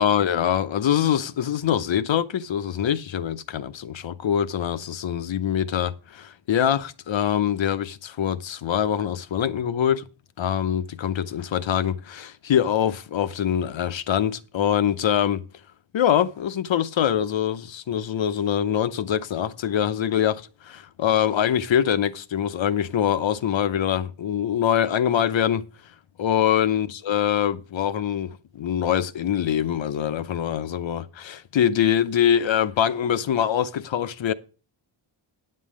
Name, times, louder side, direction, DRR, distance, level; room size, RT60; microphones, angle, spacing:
voice 1, 0.0-10.0 10.4-15.4 15.9-25.7 26.2-34.3, left 9 dB, 65° left, 0.8 m, -24 dB
9.4 x 7.7 x 5.0 m
wide cardioid pair, 95°, 50 cm